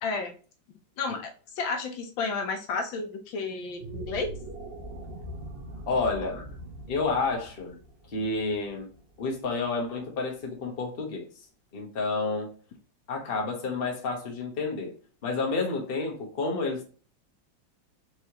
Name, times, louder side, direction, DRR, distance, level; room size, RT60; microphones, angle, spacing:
voice 1, 0.0-0.3 1.0-4.3 6.2-6.3, left 4 dB, 80° left, 1.5 m, -32 dB
sound 1, 3.6-10.0, right 1 dB, 50° right, 0.7 m, -42 dB
voice 2, 5.9-6.4 6.9-7.8 8.1-8.9 9.2-11.2 11.7-12.5 13.1-14.9 15.2-16.8, left 3 dB, 35° left, 1.1 m, -30 dB
4.6 x 3.2 x 2.8 m
omnidirectional pair, 2.1 m